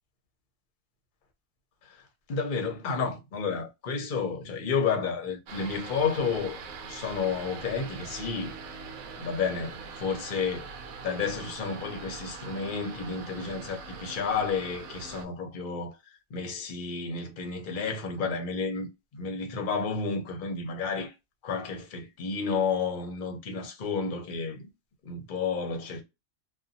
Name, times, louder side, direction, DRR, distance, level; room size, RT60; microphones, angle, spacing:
voice 1, 2.3-8.5 9.2-10.7 11.0-16.0 16.3-21.1 21.4-24.7 25.0-26.0, left 5 dB, 45° left, 0.7 m, -31 dB
sound 1, 5.5-15.3, right 5 dB, 75° right, 1.0 m, -42 dB
2.7 x 2.3 x 2.5 m
omnidirectional pair, 1.5 m